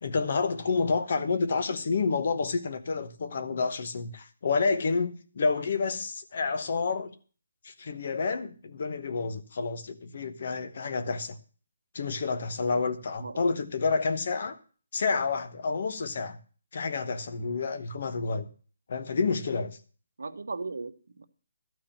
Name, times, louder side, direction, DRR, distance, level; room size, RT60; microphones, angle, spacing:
voice 1, 0.0-7.1 7.6-11.4 11.9-14.6 14.9-16.4 16.7-18.5 18.9-19.8, left 4 dB, 40° left, 10 dB, 1.0 m, -29 dB
voice 2, 20.2-21.2, right 3 dB, 85° right, 9 dB, 1.2 m, -37 dB
13.0 x 4.8 x 8.7 m, 0.40 s
hypercardioid pair, 175°, 0 cm